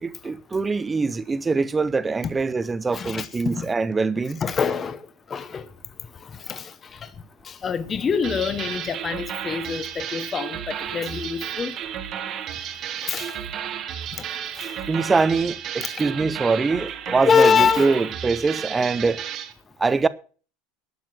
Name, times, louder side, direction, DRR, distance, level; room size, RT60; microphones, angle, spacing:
voice 1, 0.0-4.4 14.9-19.2 19.8-20.1, right 4 dB, 10° right, 0.6 m, -23 dB
voice 2, 2.9-3.7 4.4-5.0 5.3-5.7 6.2-7.1 7.4-11.8 13.0-13.4 14.6-14.7 15.8-16.1 17.2-18.1, left 6 dB, 15° left, 0.8 m, -25 dB
sound 1, 8.2-19.5, right 9 dB, 30° right, 1.2 m, -33 dB
12.0 x 7.9 x 7.6 m
supercardioid pair, 175°, 0 cm